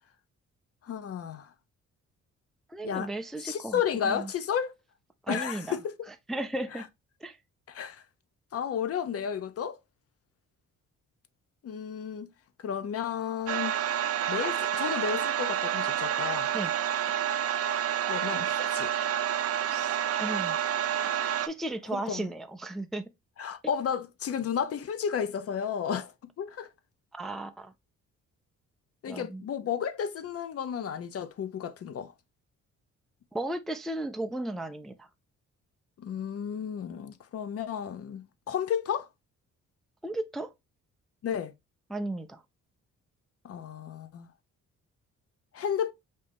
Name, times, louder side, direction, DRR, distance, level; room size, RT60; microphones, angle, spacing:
voice 1, 0.8-1.5 2.8-3.1 3.4-4.7 5.3-6.1 6.7-6.9 7.7-8.0 8.5-9.8 11.6-12.3 12.6-13.8 14.3-16.5 18.1-18.9 21.9-22.3 23.4-26.7 29.0-32.1 36.0-39.1 41.2-41.5 43.4-44.3 45.5-45.9, left 8 dB, 55° left, 0.7 m, -32 dB
voice 2, 2.7-4.3 5.3-5.8 6.3-6.8 7.2-7.4 16.5-16.7 20.2-20.6 21.4-23.1 27.1-27.7 29.1-29.4 33.3-35.1 40.0-40.5 41.9-42.4, right 1 dB, ahead, 0.4 m, -35 dB
sound 1, 13.5-21.5, right 10 dB, 55° right, 0.6 m, -29 dB
5.1 x 2.7 x 3.4 m
cardioid pair, 100°, 29 cm